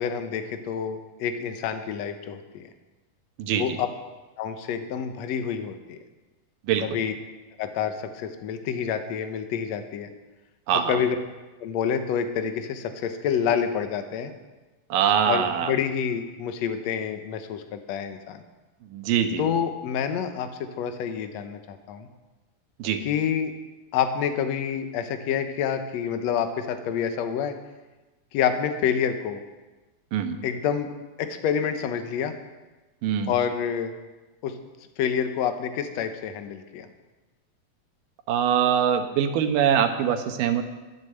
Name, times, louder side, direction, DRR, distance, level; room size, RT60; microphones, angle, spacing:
voice 1, 0.0-2.7 3.5-3.9 4.4-6.0 6.8-7.1 7.6-10.1 10.7-11.2 11.6-14.3 15.3-18.4 19.4-22.1 23.1-23.5 23.9-27.6 28.3-29.4 30.4-30.9 31.2-32.3 33.3-33.9 34.4-34.6 35.0-36.9, left 8 dB, 65° left, 8 dB, 1.9 m, -28 dB
voice 2, 3.4-3.8 6.7-6.9 10.7-10.9 14.9-15.7 18.9-19.4 22.8-23.0 30.1-30.4 33.0-33.3 38.3-40.6, right 8 dB, 75° right, 7 dB, 2.6 m, -23 dB
13.5 x 9.4 x 7.7 m, 1.2 s
omnidirectional pair, 4.0 m